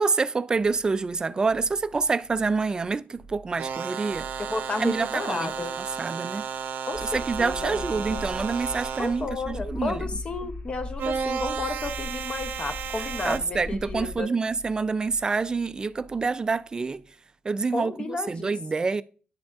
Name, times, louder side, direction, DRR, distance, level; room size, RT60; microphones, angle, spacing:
voice 1, 0.0-4.3 4.8-5.5 6.0-6.5 7.0-10.0 13.2-17.0 17.4-19.0, right 4 dB, 25° right, 0.3 m, -27 dB
sound 1, 0.6-1.2 1.4-3.7 4.1-10.8 11.1-13.3 13.6-17.3, right 3 dB, 80° left, 1.4 m, -53 dB
sound 2, 3.6-9.3 11.0-13.4, right 7 dB, 70° right, 0.6 m, -33 dB
voice 2, 4.4-5.7 6.9-8.2 9.0-14.3 17.7-18.5, left 3 dB, 35° left, 0.7 m, -32 dB
sound 3, 6.9-14.2, left 2 dB, 65° left, 2.5 m, -38 dB
9.8 x 6.1 x 2.4 m
wide cardioid pair, 135°, 3 cm